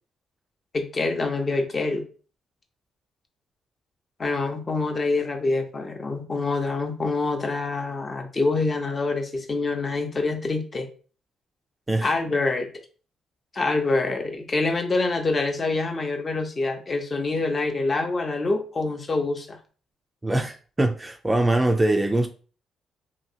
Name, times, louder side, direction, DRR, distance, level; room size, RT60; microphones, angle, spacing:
voice 1, 0.7-2.0 4.2-10.9 12.0-12.7 13.5-19.6, left 3 dB, 35° left, 0.6 m, -26 dB
voice 2, 20.2-22.3, right 1 dB, 15° right, 0.3 m, -22 dB
2.8 x 2.7 x 2.7 m
cardioid pair, 90°, 0 cm